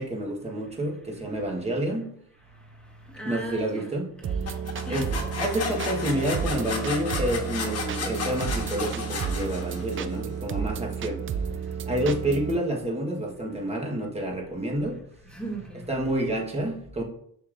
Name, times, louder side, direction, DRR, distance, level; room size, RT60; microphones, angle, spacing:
voice 1, 0.0-2.1 3.2-4.1 4.9-11.2 11.9-15.0 15.9-17.0, right 1 dB, 15° right, 1.3 m, -29 dB
voice 2, 3.0-3.9 4.2-4.6 4.9-5.2 15.2-15.9, right 1 dB, 5° left, 1.5 m, -37 dB
sound 1, 4.2-12.6, right 7 dB, 35° right, 0.4 m, -32 dB
sound 2, 4.5-10.1, left 4 dB, 40° left, 1.5 m, -34 dB
6.7 x 6.5 x 2.6 m
cardioid pair, 140°, 37 cm